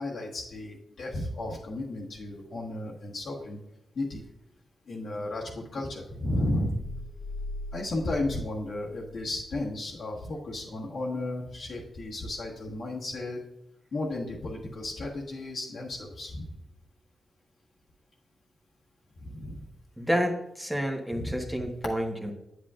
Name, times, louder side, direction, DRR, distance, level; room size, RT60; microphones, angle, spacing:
voice 1, 0.0-3.6 3.9-4.2 4.9-6.8 7.7-13.4 13.9-16.5 19.2-19.7 21.1-21.3, left 1 dB, 65° left, -5 dB, 1.5 m, -33 dB
sound 1, 6.7-9.5, left 2 dB, 35° left, 0.8 m, -40 dB
voice 2, 20.0-22.3, equal, 5° right, 2 dB, 1.1 m, -29 dB
8.9 x 8.2 x 2.5 m, 0.87 s
cardioid pair, 95°, 0 cm